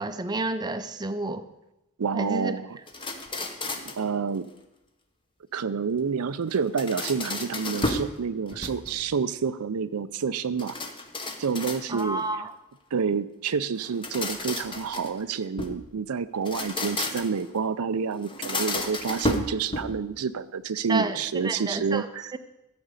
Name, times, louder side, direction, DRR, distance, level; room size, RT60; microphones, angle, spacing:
voice 1, 0.0-1.4 2.1-2.6 11.9-12.5 20.9-22.1 22.3-22.4, right 2 dB, 20° right, 9 dB, 0.6 m, -30 dB
voice 2, 2.0-2.8 4.0-4.5 5.5-10.8 11.4-12.2 12.9-22.2, right 6 dB, 85° right, 13 dB, 0.5 m, -28 dB
sound 1, 2.9-4.1 6.5-8.1 8.5-9.1 10.6-12.2 13.8-15.8 16.3-17.5 18.2-20.1, left 2 dB, 25° left, 1.0 m, -32 dB
13.5 x 5.3 x 8.1 m, 0.92 s
head